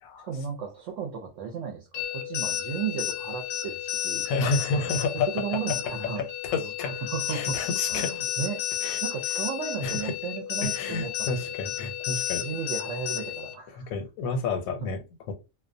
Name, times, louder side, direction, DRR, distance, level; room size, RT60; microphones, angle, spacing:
voice 1, 0.2-4.3 4.7-6.3 7.0-7.6 7.9-8.6 9.0-11.5 12.4-13.9, right 7 dB, 70° right, 3 dB, 0.8 m, -34 dB
sound 1, 1.9-13.5, left 11 dB, 65° left, 0.7 m, -32 dB
voice 2, 4.2-5.3 6.2-7.0 7.3-8.2 8.8-9.0 9.8-10.1 10.6-12.5 13.7-15.3, left 4 dB, 85° left, 5 dB, 1.0 m, -30 dB
2.4 x 2.1 x 2.5 m, 0.29 s
omnidirectional pair, 1.4 m